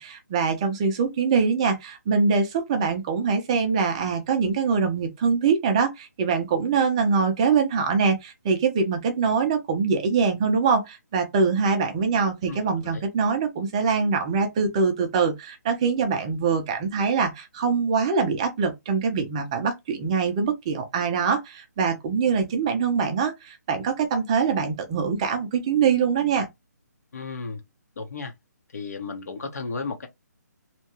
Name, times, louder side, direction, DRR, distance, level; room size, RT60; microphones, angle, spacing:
voice 1, 0.0-26.5, right 5 dB, 20° right, 0.4 m, -23 dB
voice 2, 27.1-27.6 28.0-28.3 28.7-30.1, left 4 dB, 60° left, 0.9 m, -33 dB
2.8 x 2.2 x 2.9 m
hypercardioid pair, 160°, 10 cm